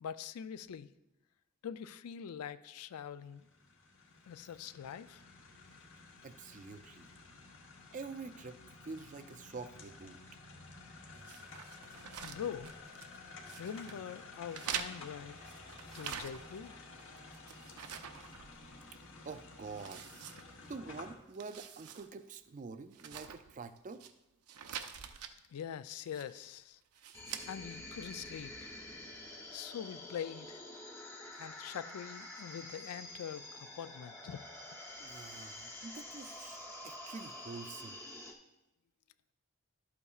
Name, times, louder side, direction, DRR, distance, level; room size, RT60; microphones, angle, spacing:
voice 1, 0.0-0.9 1.6-3.4 4.3-5.2 12.2-12.7 13.6-15.4 15.9-16.8 25.5-26.8 27.5-28.8 29.5-30.6 31.4-34.4, left 8 dB, 85° left, 0.3 m, -44 dB
sound 1, 3.2-21.2, left 3 dB, 55° left, 1.1 m, -53 dB
voice 2, 6.2-7.1 7.9-8.6 8.8-10.2 19.2-20.0 20.7-24.0 35.0-38.0, right 4 dB, 35° right, 0.3 m, -46 dB
sound 2, 11.2-13.2 13.5-14.0 14.5-16.7 17.0-18.9 19.3-19.4 19.8-20.9 21.3-22.1 22.4-22.5 22.9-24.1 24.5-25.3 26.0-26.5 26.9-27.5, right 8 dB, 90° right, 0.6 m, -45 dB
sound 3, 27.1-38.3, left 1 dB, 10° left, 0.7 m, -48 dB
12.0 x 8.3 x 2.4 m
head